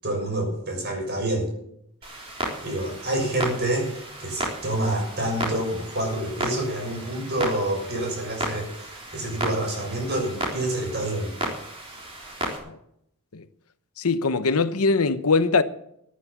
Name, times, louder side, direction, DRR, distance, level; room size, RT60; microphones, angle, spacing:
voice 1, 0.0-1.5 2.6-11.3, right 1 dB, 45° right, 6.4 m, -27 dB
Clock, 2.0-12.6, right 1 dB, 25° right, 3.7 m, -34 dB
voice 2, 14.0-15.6, left 4 dB, 80° left, 0.9 m, -22 dB
14.0 x 10.5 x 7.2 m
head